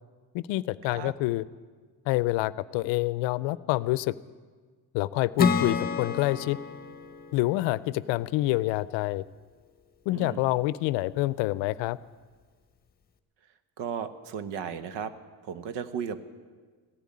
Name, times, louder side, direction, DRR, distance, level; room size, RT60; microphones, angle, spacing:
voice 1, 0.3-1.4 2.1-4.1 4.9-6.6 7.3-9.2 10.1-12.0, left 18 dB, 80° left, 19 dB, 0.6 m, -27 dB
Acoustic guitar / Strum, 5.4-8.8, left 5 dB, 20° left, 1.2 m, -30 dB
voice 2, 10.1-10.4 13.8-15.1 15.4-16.2, right 7 dB, 75° right, 13 dB, 1.1 m, -35 dB
16.0 x 10.5 x 8.6 m, 1.5 s
cardioid pair, 105°, 43 cm